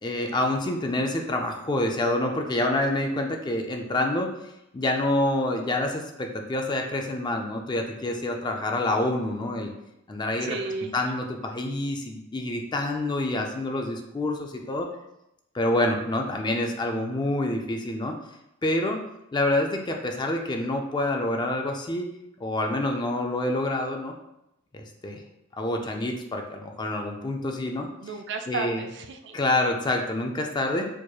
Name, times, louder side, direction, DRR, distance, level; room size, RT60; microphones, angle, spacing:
voice 1, 0.0-4.3 4.7-9.7 10.1-10.6 10.9-14.9 15.5-18.2 18.6-19.0 19.3-22.1 22.4-24.1 24.7-25.2 25.6-27.9 28.5-28.8 29.3-30.8, left 1 dB, 20° left, 3 dB, 0.4 m, -27 dB
voice 2, 10.4-11.2 28.0-29.4, right 4 dB, 60° right, 5 dB, 0.4 m, -33 dB
4.5 x 2.9 x 2.3 m, 0.86 s
head